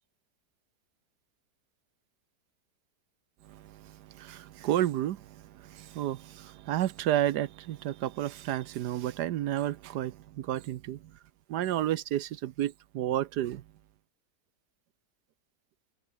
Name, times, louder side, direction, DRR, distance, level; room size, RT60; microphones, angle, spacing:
voice 1, 3.5-11.0 11.5-13.6, right 12 dB, 75° right, 1.3 m, -31 dB
omnidirectional pair, 1.8 m